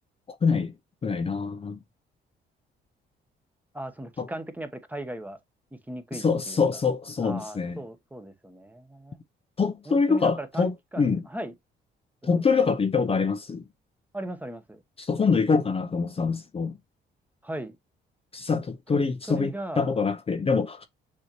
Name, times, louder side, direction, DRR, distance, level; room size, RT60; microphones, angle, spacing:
voice 1, 0.4-0.7 1.0-1.8 4.2-4.3 6.1-7.8 9.6-11.2 12.2-13.6 15.0-16.8 18.3-20.9, left 5 dB, 30° left, 0.6 m, -25 dB
voice 2, 3.7-5.4 5.7-6.8 7.2-9.2 9.9-11.5 12.3-12.5 14.1-14.8 17.4-17.8 19.3-19.9, right 1 dB, 10° right, 0.9 m, -38 dB
6.3 x 2.8 x 2.9 m
cardioid pair, 90°, 20 cm